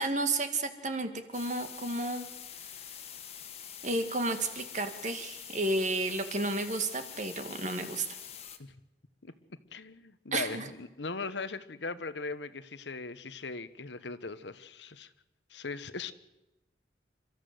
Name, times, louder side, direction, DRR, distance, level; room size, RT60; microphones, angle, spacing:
voice 1, 0.0-2.3 3.8-8.1 10.3-10.7, right 2 dB, 45° right, 8 dB, 2.1 m, -32 dB
sound 1, 1.3-8.6, left 9 dB, 35° left, 1.6 m, -45 dB
voice 2, 9.7-15.1 15.5-16.1, left 3 dB, 85° left, 13 dB, 1.1 m, -39 dB
28.5 x 13.5 x 7.9 m, 0.97 s
head